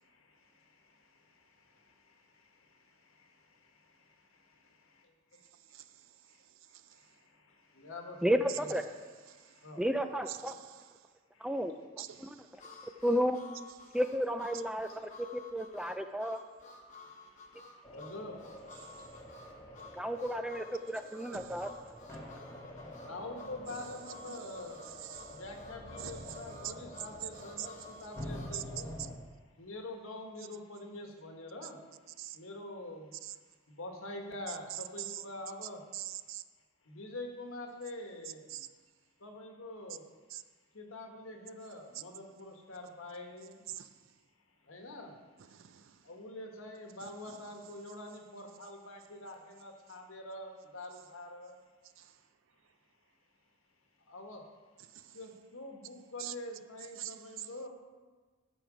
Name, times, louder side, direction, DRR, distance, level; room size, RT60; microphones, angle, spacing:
voice 1, 0.0-5.0 6.9-8.8 9.3-9.9 11.3-11.5 12.1-13.0 13.8-13.9 14.9-15.1 15.8-15.9 17.0-20.2 22.2-24.8 25.3-28.9 29.5-31.8 32.3-33.2 33.7-35.8 36.8-38.6 39.2-40.1 40.7-43.6 44.6-45.2 46.0-51.6 54.0-54.4 55.1-57.7, left 1 dB, 85° left, 3 dB, 1.5 m, -46 dB
voice 2, 8.2-8.8 9.8-10.5 11.4-11.8 12.2-12.4 13.0-13.4 13.9-16.4 19.9-21.7, equal, 5° right, 8 dB, 0.3 m, -32 dB
voice 3, 10.3-10.8 12.0-12.4 21.3-21.7 23.7-23.8 24.3-24.5 25.0-25.4 26.0-26.4 26.6-26.7 27.6-27.7 28.5-28.6 32.2-32.4 33.2-33.3 35.0-35.2 35.9-36.4 38.5-38.7 40.3-40.4 43.7-43.9 45.5-46.0 47.3-47.4 52.0-52.1 54.9-55.2 56.2-56.3 57.0-57.5, right 13 dB, 70° right, 13 dB, 0.4 m, -43 dB
Harmonica, 12.6-28.6, left 3 dB, 35° left, 1.0 m, -53 dB
sound 1, 17.8-29.2, left 1 dB, 15° left, 1.2 m, -47 dB
12.5 x 6.1 x 5.0 m, 1.4 s
head